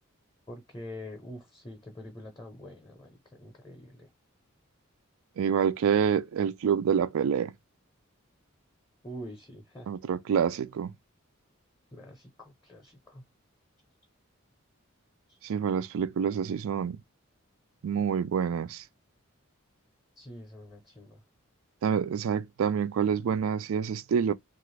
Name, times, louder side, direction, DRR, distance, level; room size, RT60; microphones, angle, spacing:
voice 1, 0.5-4.1 9.0-9.9 11.9-13.2 15.3-15.4 20.2-21.2, equal, 15° left, 0.6 m, -45 dB
voice 2, 5.4-7.5 9.9-10.9 15.4-17.0 17.8-18.8 21.8-24.3, right 7 dB, 75° right, 0.3 m, -27 dB
2.9 x 2.4 x 3.2 m
head